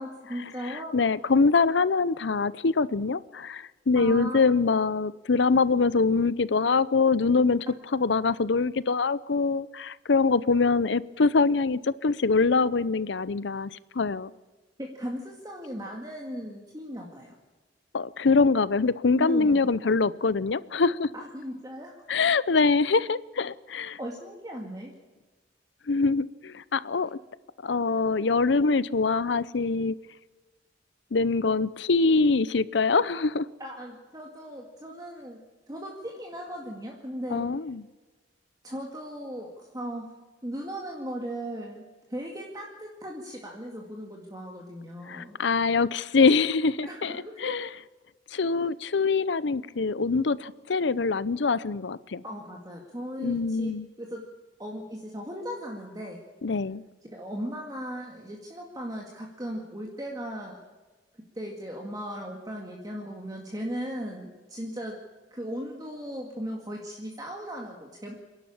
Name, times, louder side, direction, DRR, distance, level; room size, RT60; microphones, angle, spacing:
voice 1, 0.0-0.9 3.9-4.4 14.8-17.3 19.2-19.7 21.1-21.9 24.0-24.9 33.6-35.4 35.7-37.5 38.6-40.2 40.4-45.4 46.9-47.5 52.2-54.3 54.6-56.2 57.1-60.6 61.3-65.0 65.3-68.1, equal, 20° right, 0 dB, 2.0 m, -37 dB
voice 2, 0.6-7.7 7.9-14.3 17.9-21.1 22.1-24.0 25.9-27.2 27.6-29.9 31.1-33.5 37.3-37.8 45.1-47.7 48.3-52.2 53.2-53.9 56.4-56.8, left 4 dB, 75° left, 18 dB, 0.6 m, -24 dB
26.5 x 11.5 x 8.7 m, 1.2 s
head